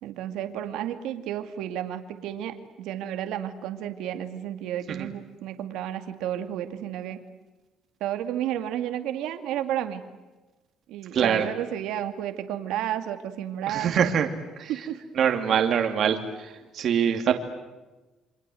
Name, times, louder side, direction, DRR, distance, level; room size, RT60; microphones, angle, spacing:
voice 1, 0.0-7.2 8.0-10.0 10.9-14.1 14.7-15.0 15.8-15.9 17.3-17.4, right 11 dB, 85° right, 8 dB, 2.3 m, -32 dB
voice 2, 11.1-11.5 13.7-14.3 14.6-14.7 15.2-16.2 16.8-17.3, right 8 dB, 45° right, 5 dB, 2.6 m, -23 dB
28.5 x 26.0 x 7.8 m, 1.1 s
cardioid pair, 160°, 0 cm